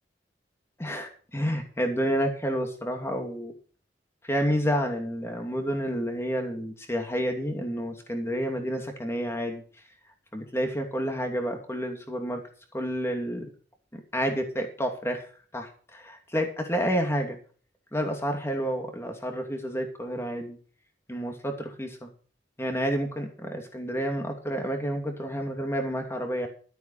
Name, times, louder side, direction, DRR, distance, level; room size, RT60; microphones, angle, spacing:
voice 1, 0.8-3.5 4.2-9.6 10.3-12.4 12.7-13.5 13.9-15.2 15.5-17.4 17.9-20.6 21.1-22.1 22.6-26.5, equal, 15° left, 4 dB, 2.6 m, -29 dB
13.5 x 8.1 x 5.7 m, 0.41 s
head